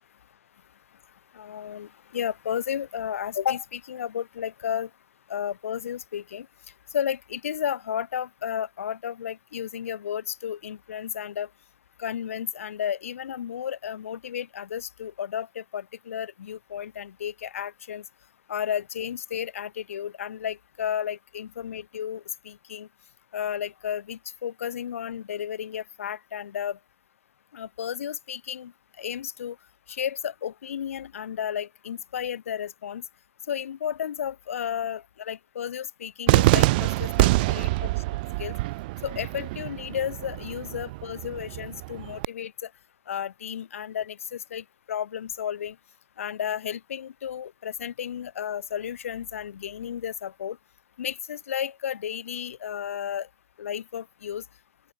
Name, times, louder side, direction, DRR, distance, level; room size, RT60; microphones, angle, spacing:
voice 1, 1.3-4.9 5.3-6.5 6.9-11.5 12.0-18.0 18.5-22.9 23.3-26.8 27.5-28.7 29.0-29.6 29.9-33.0 33.5-37.7 38.4-38.5 39.0-42.7 43.1-45.8 46.2-50.6 51.0-53.3 53.6-54.4, left 9 dB, 70° left, 2.6 m, -33 dB
Cheering / Fireworks, 36.3-42.3, right 21 dB, 40° right, 0.6 m, -25 dB
open air
hypercardioid pair, 140°, 8 cm